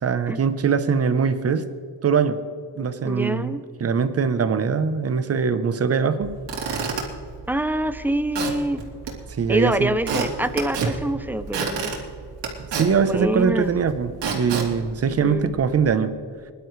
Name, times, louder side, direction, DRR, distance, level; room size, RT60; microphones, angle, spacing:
voice 1, 0.0-1.7 2.0-2.4 2.8-6.4 9.4-9.9 12.8-16.1, right 6 dB, 35° right, 11 dB, 0.9 m, -22 dB
voice 2, 3.1-3.6 7.5-8.8 9.5-11.9 13.0-13.7 15.2-15.5, right 1 dB, 5° right, 11 dB, 0.5 m, -25 dB
Squeak / Wood, 6.2-15.8, right 5 dB, 85° right, 3.1 m, -31 dB
22.5 x 11.5 x 3.2 m, 2.1 s
cardioid pair, 155°, 43 cm